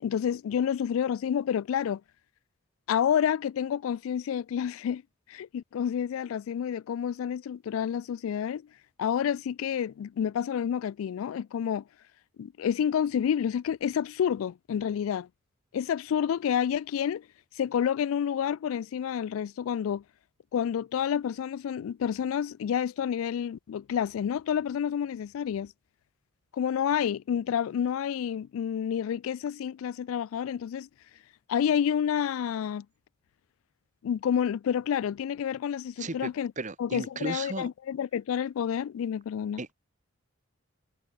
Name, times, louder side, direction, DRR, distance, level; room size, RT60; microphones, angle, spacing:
voice 1, 0.0-2.0 2.9-5.0 5.3-8.6 9.0-11.8 12.4-15.3 15.7-17.3 17.6-20.0 20.5-25.7 26.5-30.9 31.5-32.9 34.0-36.5 36.8-39.6, left 8 dB, 75° left, 0.3 m, -29 dB
voice 2, 36.0-37.7 39.6-39.7, right 2 dB, 35° right, 1.5 m, -35 dB
head